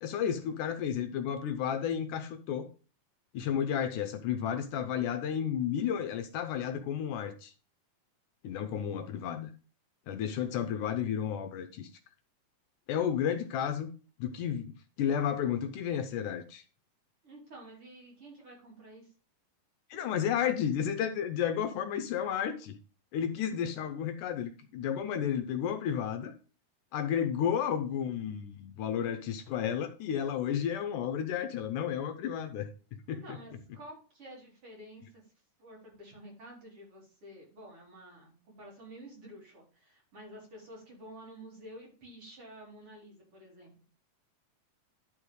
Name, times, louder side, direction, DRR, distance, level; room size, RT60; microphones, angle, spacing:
voice 1, 0.0-2.7 3.3-7.5 8.4-9.5 10.1-11.9 12.9-13.9 14.2-16.6 19.9-22.8 23.1-26.3 26.9-32.7 33.1-33.4, left 8 dB, 75° left, 8 dB, 2.2 m, -32 dB
voice 2, 17.2-19.1 33.1-35.2 35.6-43.7, right 1 dB, 40° right, -3 dB, 4.8 m, -50 dB
11.0 x 5.4 x 4.8 m, 0.36 s
omnidirectional pair, 3.8 m